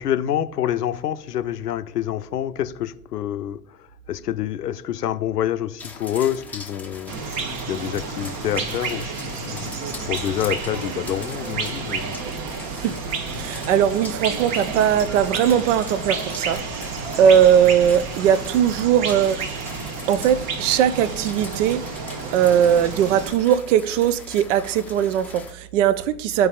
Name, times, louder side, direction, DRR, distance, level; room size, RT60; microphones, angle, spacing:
voice 1, 0.0-7.1 7.7-9.7 10.1-12.2, left 11 dB, 75° left, 0.6 m, -27 dB
sound 1, 5.8-25.5, left 3 dB, 5° left, 0.6 m, -41 dB
sound 2, 7.1-23.3, right 4 dB, 35° right, 0.9 m, -31 dB
voice 2, 13.3-19.4 20.1-21.8 22.3-26.5, right 9 dB, 50° right, 0.5 m, -19 dB
13.5 x 4.7 x 2.4 m
figure-of-eight pair, 90°, 48 cm